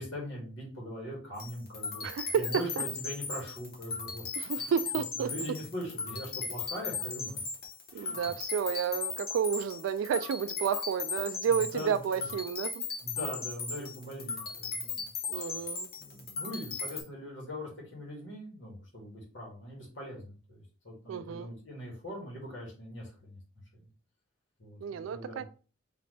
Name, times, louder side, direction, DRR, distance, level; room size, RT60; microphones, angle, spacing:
voice 1, 0.0-2.1 2.3-4.7 5.2-7.4 7.9-8.2 11.5-12.2 13.0-15.1 16.0-23.4 23.7-23.8 24.6-25.5, equal, 65° left, 2.0 m, -41 dB
sound 1, 1.4-17.0, left 5 dB, 50° left, 1.1 m, -37 dB
voice 2, 2.0-2.4 4.4-5.3 7.9-12.9 15.3-15.9 21.1-21.5 24.8-25.4, right 7 dB, 75° right, 0.3 m, -31 dB
4.0 x 3.3 x 3.3 m
head